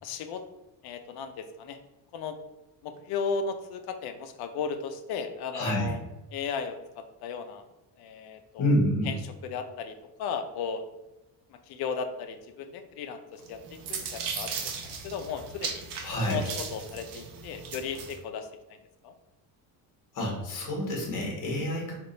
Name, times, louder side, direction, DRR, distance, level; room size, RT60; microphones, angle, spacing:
voice 1, 0.0-0.4 0.8-1.8 2.1-2.4 2.8-6.0 6.3-7.6 8.0-8.7 9.0-10.8 11.7-13.6 13.9-14.6 14.8-15.8 16.2-18.5 19.0-19.1, left 5 dB, 70° left, 7 dB, 0.6 m, -35 dB
voice 2, 5.5-5.9 8.6-9.1 16.0-16.4 20.1-21.9, equal, 50° left, -1 dB, 1.3 m, -28 dB
sound 1, 13.4-18.2, right 5 dB, 60° right, 0.7 m, -37 dB
3.6 x 2.4 x 3.9 m, 1.0 s
cardioid pair, 160°, 39 cm